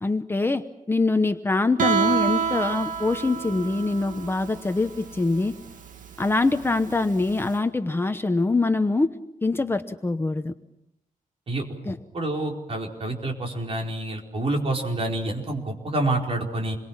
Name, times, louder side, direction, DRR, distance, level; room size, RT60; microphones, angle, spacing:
voice 1, 0.0-5.5 6.2-9.1 9.4-10.5 11.8-12.0, left 3 dB, 15° left, 7 dB, 0.9 m, -24 dB
Guitar, 1.8-7.5, right 6 dB, 70° right, 2.1 m, -28 dB
voice 2, 12.1-16.8, right 2 dB, 45° right, 1 dB, 4.6 m, -27 dB
28.0 x 22.5 x 7.3 m, 0.83 s
wide cardioid pair, 155°, 14 cm